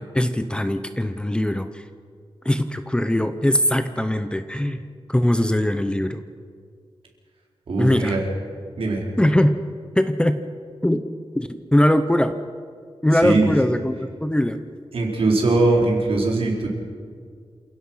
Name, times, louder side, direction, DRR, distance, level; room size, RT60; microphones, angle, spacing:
voice 1, 0.0-1.8 2.4-4.8 5.1-6.2 7.8-8.2 9.2-9.6 10.0-10.4 10.8-11.0 11.3-12.3 13.0-14.6, left 1 dB, 10° left, 9 dB, 0.8 m, -21 dB
voice 2, 7.7-8.2 8.8-9.0 13.2-13.5 14.9-16.7, right 2 dB, 70° right, -1 dB, 4.4 m, -20 dB
28.0 x 16.5 x 5.7 m, 2.1 s
wide cardioid pair, 175°, 10 cm